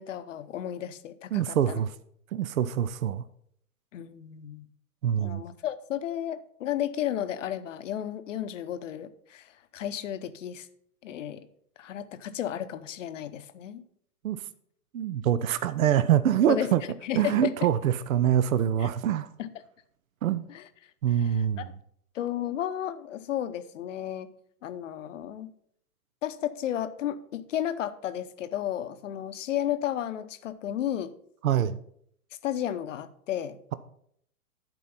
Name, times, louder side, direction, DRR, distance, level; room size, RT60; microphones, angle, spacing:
voice 1, 0.0-1.8 3.9-4.7 5.2-10.7 11.0-11.5 11.8-13.8 16.5-17.5 18.8-18.9 19.4-19.5 20.5-20.6 21.1-21.6 22.1-24.3 24.6-25.5 26.2-31.1 32.4-33.6, left 11 dB, 55° left, 12 dB, 0.8 m, -33 dB
voice 2, 1.3-1.9 2.3-3.2 5.0-5.4 14.2-14.4 14.9-16.8 17.2-19.3 20.2-20.5 21.0-21.6 31.4-31.8, right 10 dB, 65° right, 15 dB, 0.6 m, -25 dB
10.5 x 4.6 x 5.7 m, 0.67 s
figure-of-eight pair, 115°, 45 cm